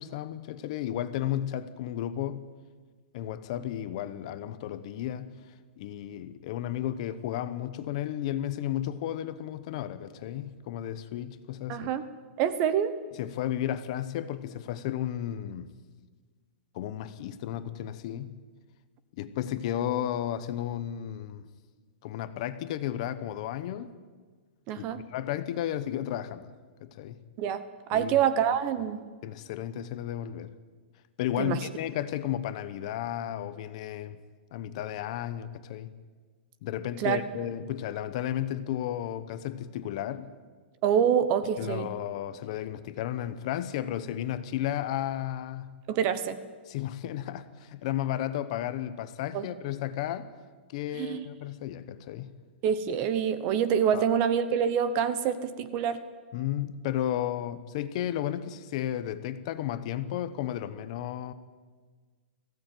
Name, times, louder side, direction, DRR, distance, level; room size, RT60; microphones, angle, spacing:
voice 1, 0.0-2.4 3.1-5.4 5.8-11.9 13.2-15.7 16.7-18.4 19.2-21.5 22.0-23.9 24.8-26.5 26.8-27.2 27.9-28.1 29.2-30.5 31.2-34.2 34.5-35.9 36.6-40.3 41.6-45.7 46.7-50.3 50.7-52.3 53.9-54.1 56.3-61.3, left 11 dB, 35° left, 0.9 m, -33 dB
voice 2, 11.7-12.1 12.4-13.0 24.7-25.0 27.4-27.6 27.9-29.0 31.4-31.6 37.0-37.2 40.8-41.9 45.9-46.4 49.3-49.5 50.9-51.2 52.6-56.0, right 8 dB, 25° right, 0.9 m, -26 dB
19.0 x 16.0 x 9.3 m
hypercardioid pair, 180°, 6 cm